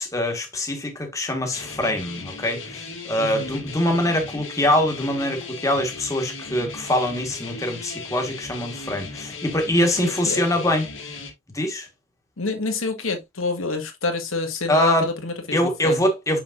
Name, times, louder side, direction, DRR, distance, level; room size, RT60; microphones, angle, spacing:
voice 1, 0.0-10.9 11.5-11.9 14.7-15.1 15.5-16.4, left 1 dB, 15° left, 1.5 m, -23 dB
sound 1, 1.5-11.3, left 4 dB, 70° left, 2.2 m, -37 dB
voice 2, 3.2-3.6 9.8-10.4 12.4-16.0, left 3 dB, 90° left, 1.8 m, -28 dB
6.4 x 5.9 x 2.6 m
head